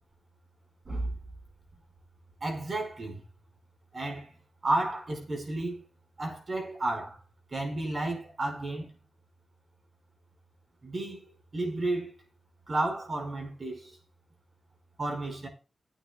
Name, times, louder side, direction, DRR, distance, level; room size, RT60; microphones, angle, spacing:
voice 1, 0.8-1.2 2.4-3.2 3.9-4.3 4.6-5.8 6.2-7.2 7.5-8.9 10.8-12.1 12.7-14.0 15.0-15.5, right 2 dB, 40° right, 5.0 m, -32 dB
19.5 x 8.9 x 2.3 m
wide cardioid pair, 130°, 0 cm